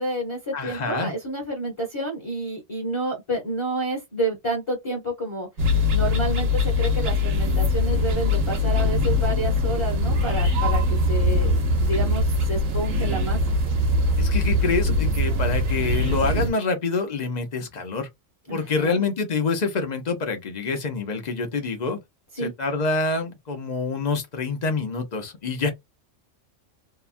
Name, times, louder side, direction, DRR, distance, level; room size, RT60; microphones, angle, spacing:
voice 1, 0.0-5.5 5.9-13.4 18.5-19.0 22.3-22.5, right 1 dB, 25° left, 0.9 m, -29 dB
voice 2, 0.5-1.1 14.2-18.1 18.5-22.0 22.4-25.7, left 4 dB, 45° left, 0.6 m, -26 dB
sound 1, 5.6-16.5, left 2 dB, 80° right, 1.2 m, -22 dB
2.8 x 2.2 x 2.5 m
omnidirectional pair, 1.3 m